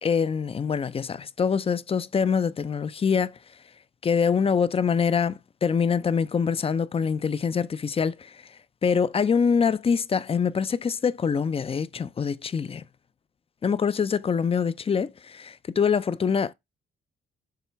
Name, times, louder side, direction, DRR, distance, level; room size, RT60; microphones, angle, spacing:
voice 1, 0.0-3.3 4.0-8.3 8.8-12.8 13.6-16.5, left 6 dB, 30° left, 0.5 m, -24 dB
6.8 x 3.1 x 4.5 m
cardioid pair, 90°, 20 cm